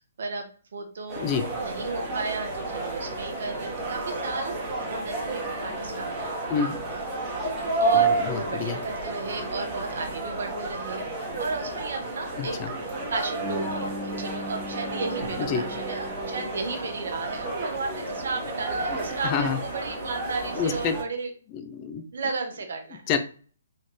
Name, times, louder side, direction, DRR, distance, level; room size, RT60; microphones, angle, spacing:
voice 1, 0.2-1.3 1.5-4.6 4.9-6.5 7.8-12.6 13.1-21.3 22.1-23.0, right 4 dB, 65° right, 4 dB, 1.3 m, -33 dB
sound 1, 1.1-21.0, right 3 dB, 25° right, 1.7 m, -31 dB
voice 2, 1.2-1.5 6.5-6.8 7.9-8.8 12.4-12.7 15.4-15.6 19.2-19.6 20.6-21.0 21.5-22.0 23.1-23.2, left 6 dB, 30° left, 8 dB, 0.6 m, -28 dB
Bass guitar, 13.4-17.4, equal, ahead, 1.7 m, -39 dB
4.0 x 4.0 x 3.2 m, 0.41 s
hypercardioid pair, 145°, 0 cm